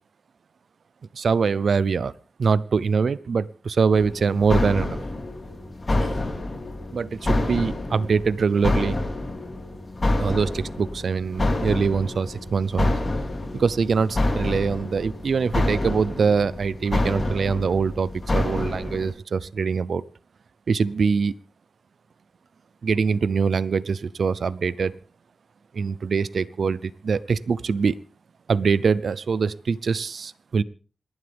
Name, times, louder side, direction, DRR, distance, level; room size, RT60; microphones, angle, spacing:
voice 1, 1.1-2.1 2.4-5.0 5.9-6.1 6.9-9.0 10.2-13.0 13.5-20.0 20.7-21.4 22.8-24.9 25.7-28.0 28.5-30.6, right 5 dB, 70° right, 18 dB, 0.6 m, -23 dB
sound 1, 3.9-19.1, left 2 dB, 40° left, 4.2 m, -27 dB
27.0 x 11.5 x 3.6 m, 0.38 s
cardioid pair, 70°, 0 cm